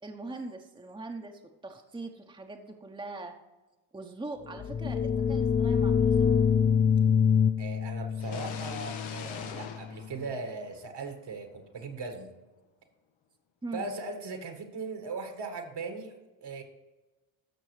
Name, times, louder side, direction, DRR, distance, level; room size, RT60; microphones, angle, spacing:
voice 1, 0.0-3.4 3.9-6.4 13.6-13.9, right 2 dB, 10° right, 4 dB, 0.9 m, -41 dB
sound 1, 4.5-10.1, left 7 dB, 25° left, 0.4 m, -26 dB
voice 2, 7.6-12.3 13.7-16.6, right 3 dB, 55° right, 6 dB, 1.7 m, -39 dB
sound 2, 8.2-11.0, left 7 dB, 75° left, 1.0 m, -42 dB
13.5 x 6.0 x 3.3 m, 1.2 s
supercardioid pair, 55°, 48 cm